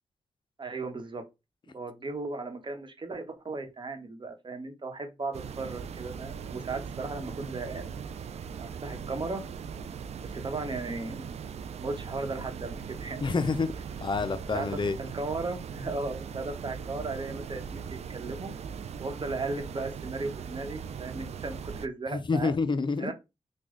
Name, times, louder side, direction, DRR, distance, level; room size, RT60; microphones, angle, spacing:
voice 1, 0.6-1.2 1.7-7.9 8.6-9.4 10.2-11.4 11.8-13.2 14.5-14.7 15.0-18.5 19.0-22.5 23.0-23.1, right 3 dB, 40° right, 1.0 m, -36 dB
sound 1, 5.3-21.9, right 7 dB, 65° right, 0.4 m, -40 dB
voice 2, 13.2-13.7 14.0-15.0 22.1-23.1, left 4 dB, 40° left, 0.5 m, -28 dB
3.2 x 2.3 x 3.7 m
cardioid pair, 50°, 12 cm